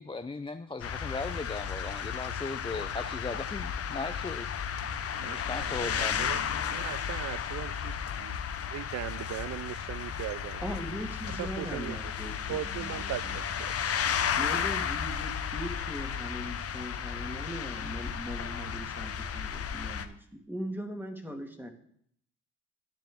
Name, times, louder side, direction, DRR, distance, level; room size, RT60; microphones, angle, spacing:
voice 1, 0.0-4.6 5.2-6.3, left 3 dB, 15° left, 0.6 m, -38 dB
sound 1, 0.8-20.1, left 7 dB, 45° left, 0.9 m, -34 dB
voice 2, 5.2-6.4 6.7-8.4 8.7-10.6 11.3-12.1 12.5-13.9, right 13 dB, 55° right, 0.4 m, -39 dB
voice 3, 10.6-13.8 14.4-21.7, equal, 5° right, 2.0 m, -40 dB
10.5 x 10.0 x 3.6 m
supercardioid pair, 65°, 32 cm